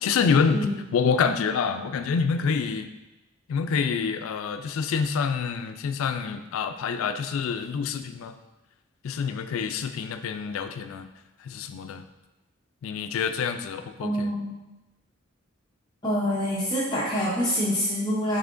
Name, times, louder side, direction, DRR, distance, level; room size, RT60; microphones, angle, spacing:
voice 1, 0.0-2.9 3.5-8.4 9.0-11.1 11.4-12.0 12.8-14.3, left 6 dB, 75° left, 8 dB, 0.3 m, -27 dB
voice 2, 14.0-14.5 16.0-18.4, equal, 20° left, -7 dB, 0.7 m, -26 dB
5.6 x 3.6 x 2.5 m, 1.0 s
head